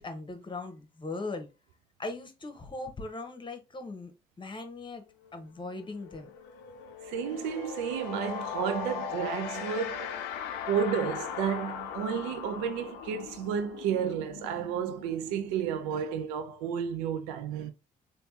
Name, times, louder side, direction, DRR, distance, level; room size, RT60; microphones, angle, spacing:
voice 1, 0.0-1.5 2.0-4.1 4.4-5.0 5.3-6.3, left 3 dB, 25° left, 1.1 m, -39 dB
sound 1, 5.2-5.4 5.7-16.3, left 7 dB, 75° left, 0.5 m, -39 dB
voice 2, 7.0-10.2 10.7-17.7, right 7 dB, 85° right, 0.5 m, -32 dB
3.4 x 2.7 x 2.8 m
hypercardioid pair, 50°, 18 cm